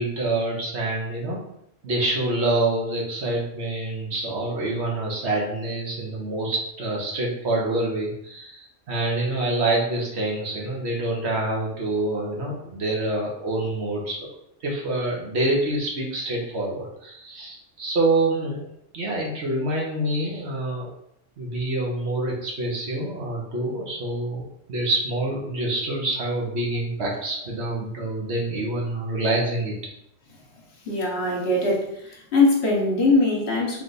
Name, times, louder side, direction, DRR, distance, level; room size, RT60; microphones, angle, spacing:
voice 1, 0.0-1.4 1.8-14.2 14.6-18.6 18.9-20.9 21.4-24.4 24.7-29.8, right 2 dB, 60° right, -2 dB, 1.2 m, -26 dB
voice 2, 30.9-31.9 32.3-33.8, left 2 dB, 55° left, -1 dB, 1.2 m, -21 dB
3.3 x 3.3 x 4.0 m, 0.74 s
omnidirectional pair, 1.3 m